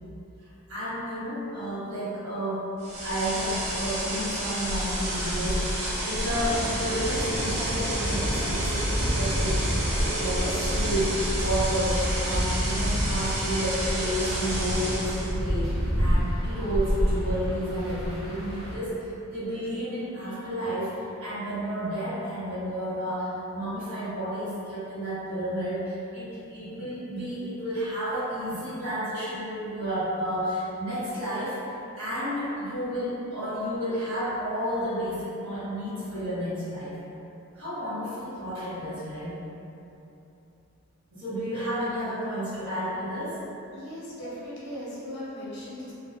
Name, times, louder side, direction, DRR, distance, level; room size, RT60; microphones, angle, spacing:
voice 1, 0.7-2.6 3.0-9.7 10.1-20.9 21.2-31.6 32.0-36.9 37.5-39.4 41.1-43.4 44.2-44.3 45.3-45.4, equal, 75° right, -11 dB, 1.1 m, -31 dB
sound 1, 2.8-15.3, right 1 dB, 35° right, 0.5 m, -30 dB
sound 2, 6.2-18.7, equal, 60° right, 0.7 m, -29 dB
voice 2, 43.7-45.9, left 1 dB, 50° left, -8 dB, 0.5 m, -38 dB
2.3 x 2.3 x 2.5 m, 2.8 s
head